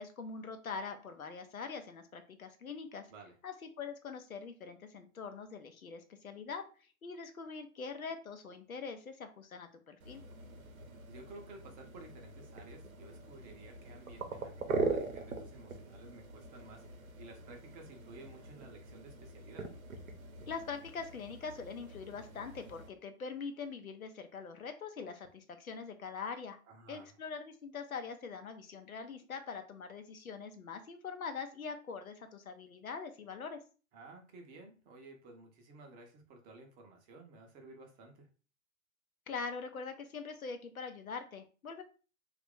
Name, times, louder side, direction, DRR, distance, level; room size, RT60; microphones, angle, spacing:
voice 1, 0.0-3.1 3.4-10.2 20.4-26.6 26.9-33.6 39.3-41.8, left 5 dB, 85° left, 7 dB, 0.7 m, -43 dB
sound 1, 10.0-22.9, right 4 dB, 80° right, 0.7 m, -42 dB
voice 2, 11.1-19.7 26.7-27.2 33.9-38.3, right 3 dB, 20° right, 2 dB, 0.6 m, -54 dB
2.9 x 2.4 x 3.5 m, 0.36 s
figure-of-eight pair, 105°, 41 cm